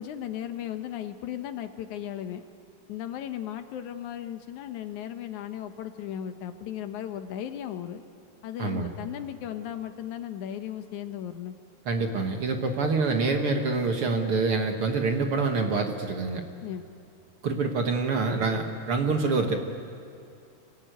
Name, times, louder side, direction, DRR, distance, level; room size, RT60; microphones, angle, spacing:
voice 1, 0.0-2.5 2.9-8.0 8.4-11.5 16.6-16.8, left 10 dB, 75° left, 8 dB, 2.4 m, -36 dB
voice 2, 11.9-16.4 17.4-19.6, right 3 dB, 55° right, 4 dB, 1.9 m, -26 dB
26.0 x 18.5 x 9.2 m, 2.4 s
omnidirectional pair, 3.5 m